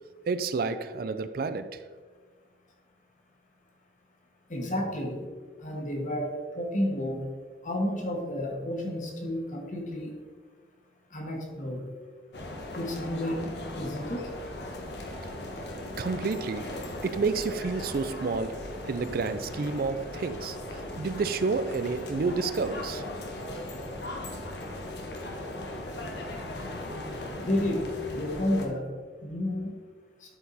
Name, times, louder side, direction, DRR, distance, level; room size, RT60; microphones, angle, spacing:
voice 1, 0.3-1.8 16.0-16.7 17.0-20.6 21.0-23.0, right 4 dB, 55° right, 0.4 m, -30 dB
voice 2, 4.5-5.2 5.6-7.2 7.6-10.1 11.1-11.9 12.7-13.5 13.7-14.3 27.4-27.8 28.1-28.9 29.2-29.7, left 1 dB, 45° left, 1.5 m, -31 dB
sound 1, 12.3-28.7, left 1 dB, 70° left, 1.3 m, -38 dB
11.5 x 4.8 x 4.1 m
head